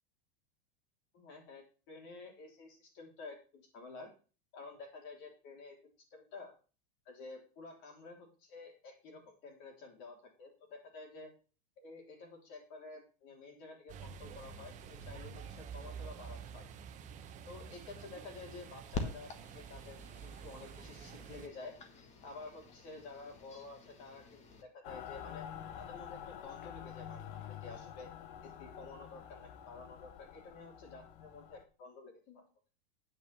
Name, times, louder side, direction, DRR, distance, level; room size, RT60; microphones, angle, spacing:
voice 1, 1.1-4.1 4.5-5.8 6.1-6.5 7.1-11.3 11.8-16.7 17.5-21.8 22.2-25.5 25.8-28.1 28.4-32.4, left 3 dB, 40° left, 2 dB, 3.7 m, -51 dB
sound 1, 13.9-21.5, right 6 dB, 25° right, 0.9 m, -49 dB
sound 2, 18.9-24.6, left 4 dB, 25° left, 1.4 m, -46 dB
Mechanical fan, 24.8-31.6, left 9 dB, 60° left, 1.2 m, -48 dB
8.9 x 5.8 x 6.9 m, 0.36 s
supercardioid pair, 160°, 29 cm